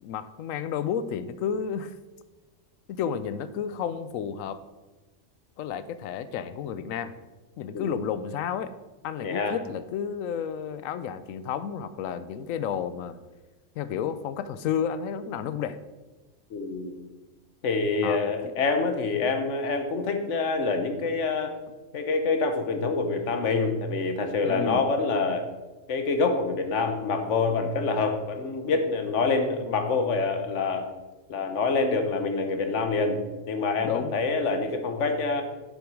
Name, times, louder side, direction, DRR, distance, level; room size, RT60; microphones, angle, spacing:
voice 1, 0.0-1.9 2.9-4.6 5.6-7.1 7.6-8.7 9.0-13.2 13.8-15.8 18.0-18.6 24.4-24.8 33.8-34.1, left 8 dB, 85° left, 13 dB, 1.0 m, -31 dB
voice 2, 9.2-9.6 16.5-17.0 17.6-21.5 21.9-25.5 25.9-30.9 31.3-35.4, left 4 dB, 65° left, 6 dB, 1.3 m, -26 dB
8.0 x 7.0 x 4.8 m, 1.2 s
omnidirectional pair, 1.3 m